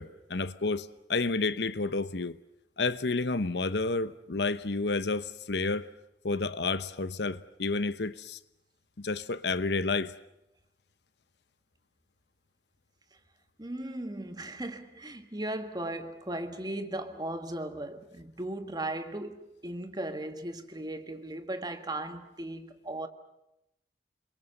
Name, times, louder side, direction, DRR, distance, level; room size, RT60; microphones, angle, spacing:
voice 1, 0.0-2.4 2.8-5.9 6.2-8.4 9.0-10.1, left 3 dB, 70° left, 0.9 m, -30 dB
voice 2, 13.6-23.1, right 1 dB, 25° right, 1.6 m, -37 dB
28.0 x 22.5 x 6.7 m
head